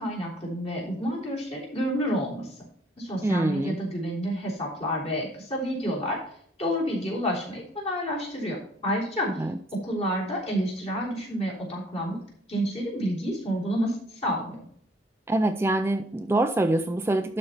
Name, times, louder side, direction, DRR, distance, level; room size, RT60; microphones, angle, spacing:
voice 1, 0.0-2.5 3.0-6.2 6.6-9.4 9.8-12.2 12.5-14.6, equal, 35° left, -3 dB, 3.5 m, -29 dB
voice 2, 3.2-3.8 9.4-9.6 15.3-17.4, right 1 dB, 15° right, 8 dB, 0.4 m, -25 dB
11.5 x 4.2 x 5.7 m, 0.63 s
head